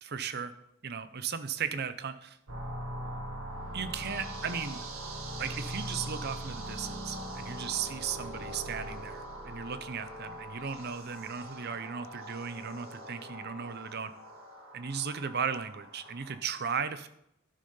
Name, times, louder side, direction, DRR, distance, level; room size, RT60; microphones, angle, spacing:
voice 1, 0.0-0.5 0.8-2.4 3.7-4.9 5.4-14.1 14.7-17.1, right 6 dB, 50° right, 12 dB, 0.7 m, -36 dB
sound 1, 2.5-16.4, right 1 dB, 90° right, 1.8 m, -41 dB
11.5 x 6.6 x 5.5 m, 0.77 s
head